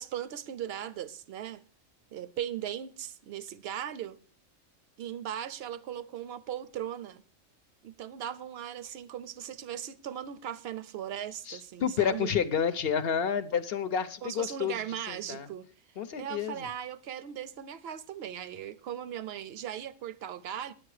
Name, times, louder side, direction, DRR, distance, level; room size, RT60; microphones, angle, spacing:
voice 1, 0.0-1.6 2.1-4.2 5.0-7.2 7.8-12.3 14.2-15.7 16.2-20.7, right 10 dB, 60° right, 0.7 m, -38 dB
voice 2, 11.5-15.5 16.0-16.7, left 7 dB, 55° left, 0.8 m, -30 dB
10.0 x 8.8 x 4.8 m
omnidirectional pair, 1.4 m